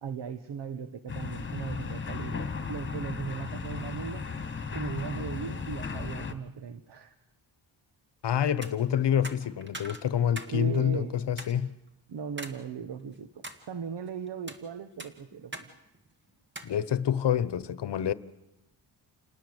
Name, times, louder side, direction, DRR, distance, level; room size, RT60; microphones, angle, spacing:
voice 1, 0.0-4.3 4.7-7.1 10.5-11.2 12.1-13.3 13.7-15.7, right 6 dB, 60° right, 1.3 m, -37 dB
sound 1, 1.1-6.3, left 5 dB, 25° left, 2.0 m, -35 dB
voice 2, 8.2-11.7 16.6-18.1, left 9 dB, 60° left, 1.1 m, -27 dB
sound 2, 8.5-8.7 9.2-10.6 10.9-11.0 11.4-11.5 12.4-12.6 13.0-13.6 14.3-14.6 15.0-15.7 15.9-16.1 16.6-16.7, right 2 dB, 25° right, 2.0 m, -41 dB
28.5 x 19.5 x 8.0 m
wide cardioid pair, 135°, 47 cm